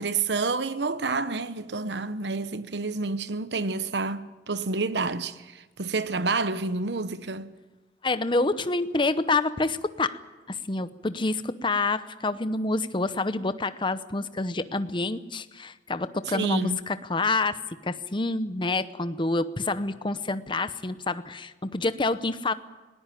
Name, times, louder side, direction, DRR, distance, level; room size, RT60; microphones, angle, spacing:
voice 1, 0.0-7.5 16.3-16.8, right 3 dB, 75° right, 1.0 m, -29 dB
voice 2, 8.0-10.2 10.5-22.5, left 3 dB, 30° left, 0.8 m, -27 dB
19.5 x 18.5 x 9.2 m
head